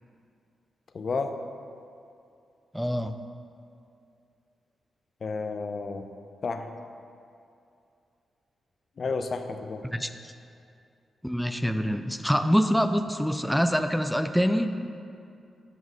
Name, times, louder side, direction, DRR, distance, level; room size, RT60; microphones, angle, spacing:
voice 1, 0.9-1.4 5.2-6.1 6.4-6.7 9.0-9.9, left 4 dB, 60° left, 7 dB, 0.5 m, -31 dB
voice 2, 2.7-3.2 9.9-10.3 11.2-14.7, equal, ahead, 8 dB, 0.4 m, -25 dB
7.3 x 3.9 x 6.1 m, 2.5 s
supercardioid pair, 50°, 0 cm